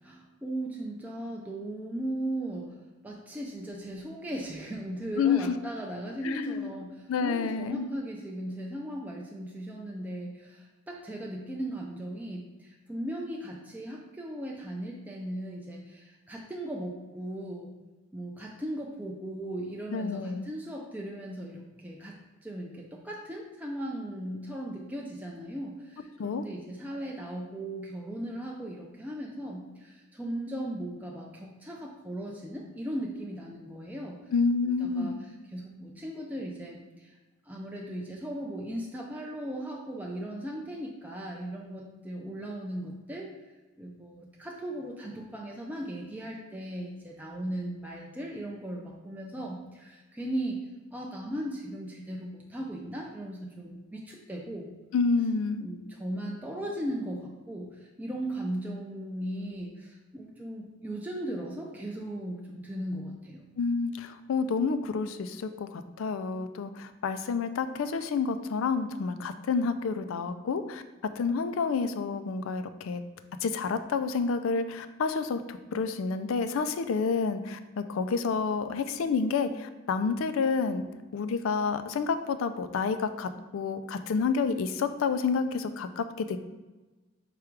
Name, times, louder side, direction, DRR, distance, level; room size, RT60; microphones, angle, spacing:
voice 1, 0.0-2.7 3.0-17.7 18.1-22.2 22.4-34.2 34.8-35.2 35.5-37.1 37.5-43.3 43.8-50.6 50.9-54.7 55.6-63.5, right 1 dB, 10° right, -2 dB, 0.4 m, -37 dB
voice 2, 5.2-5.5 6.2-6.7 7.1-7.9 19.9-20.5 26.2-26.4 34.3-35.2 54.9-55.7 63.6-70.8 71.2-73.0 73.4-80.8 81.1-86.5, left 5 dB, 75° left, 10 dB, 0.4 m, -29 dB
4.9 x 2.3 x 4.5 m, 1.2 s
head